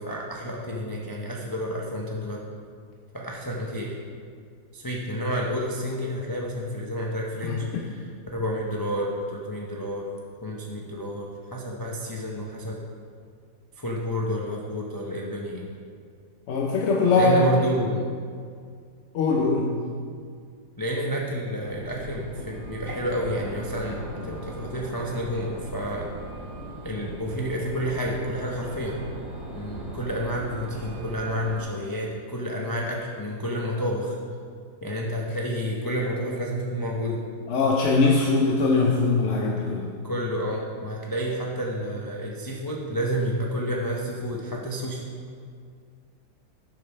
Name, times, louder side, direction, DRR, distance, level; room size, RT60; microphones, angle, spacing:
voice 1, 0.0-2.4 3.1-4.0 4.7-10.1 10.4-12.8 13.8-15.7 17.2-18.1 20.8-26.1 26.8-29.0 29.5-34.2 34.8-37.2 40.0-45.0, equal, 35° left, -2 dB, 0.3 m, -30 dB
voice 2, 7.4-7.8 16.5-17.4 19.1-19.9 37.5-39.9, left 3 dB, 60° left, -1 dB, 0.9 m, -22 dB
sound 1, 21.6-31.6, right 1 dB, 50° right, 1.8 m, -38 dB
7.4 x 5.3 x 5.7 m, 2.1 s
omnidirectional pair, 1.8 m